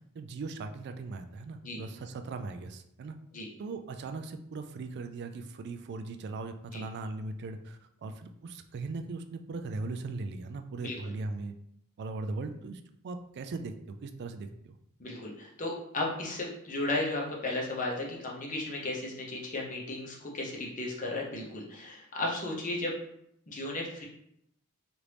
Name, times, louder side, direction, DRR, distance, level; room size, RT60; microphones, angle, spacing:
voice 1, 0.1-3.2 3.6-11.5 12.0-14.8, right 3 dB, 50° right, 7 dB, 0.3 m, -39 dB
voice 2, 15.0-22.9 23.5-24.0, left 2 dB, 35° left, -2 dB, 0.7 m, -34 dB
3.0 x 2.5 x 3.3 m, 0.75 s
head